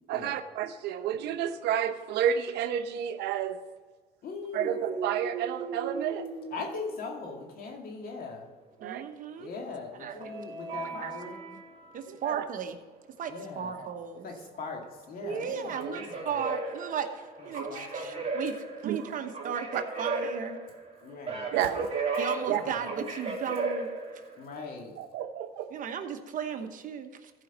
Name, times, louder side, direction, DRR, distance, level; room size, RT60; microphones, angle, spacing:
voice 1, 0.1-3.6 4.5-6.3 8.8-9.0 12.2-12.4 18.8-19.0 21.5-21.9 22.5-22.6 25.0-25.7, right 9 dB, 85° right, 9 dB, 0.8 m, -30 dB
voice 2, 4.2-4.7 6.5-8.5 9.4-11.4 13.3-13.7 14.2-16.4 17.4-18.3 21.0-21.5 22.4-22.9 24.4-25.0, left 4 dB, 60° left, 2 dB, 2.1 m, -40 dB
sound 1, 4.5-7.4 10.2-12.0 15.5-24.4, right 4 dB, 35° right, 2.3 m, -36 dB
voice 3, 8.8-9.5 10.0-10.2 10.8-11.1 11.5-11.6 11.9-12.8 13.2-14.3 15.2-18.5 18.8-20.6 22.2-23.9 25.7-27.3, right 7 dB, 50° right, 6 dB, 1.1 m, -35 dB
14.5 x 5.1 x 5.5 m, 1.4 s
cardioid pair, 110°, 17 cm